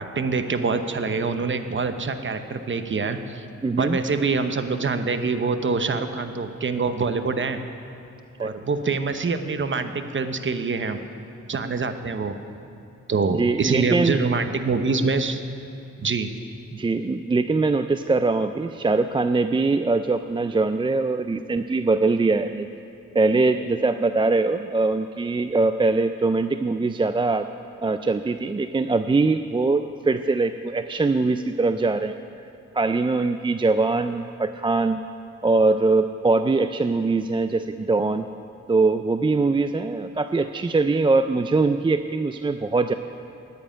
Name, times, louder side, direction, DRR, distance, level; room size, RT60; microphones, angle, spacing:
voice 1, 0.0-3.5 3.8-7.6 8.4-11.0 11.5-12.3 13.1-15.4 16.0-16.3, right 4 dB, 40° right, 8 dB, 1.0 m, -25 dB
voice 2, 3.6-4.0 8.4-8.6 13.3-14.2 16.7-22.7 23.1-27.5 27.8-32.2 32.7-35.0 35.4-38.3 38.7-42.9, right 3 dB, 15° right, 9 dB, 0.4 m, -22 dB
9.8 x 9.0 x 10.0 m, 2.7 s
cardioid pair, 80°, 30 cm